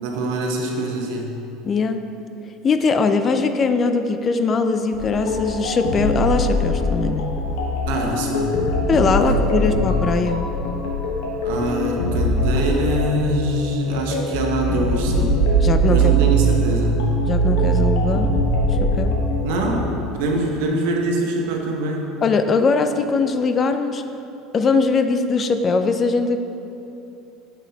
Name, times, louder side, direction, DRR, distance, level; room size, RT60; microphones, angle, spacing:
voice 1, 0.0-1.3 7.9-8.6 9.2-9.9 11.4-15.4 15.9-17.0 19.4-22.1, right 2 dB, 80° right, 0 dB, 0.9 m, -24 dB
voice 2, 1.6-2.0 2.6-7.3 8.9-10.5 15.6-16.1 17.3-18.3 18.8-19.2 22.2-24.0 24.5-26.4, left 4 dB, 30° left, 8 dB, 0.3 m, -20 dB
sound 1, 4.9-19.8, right 1 dB, 85° left, 1.1 m, -21 dB
7.1 x 5.6 x 2.8 m, 2.8 s
supercardioid pair, 130°, 0 cm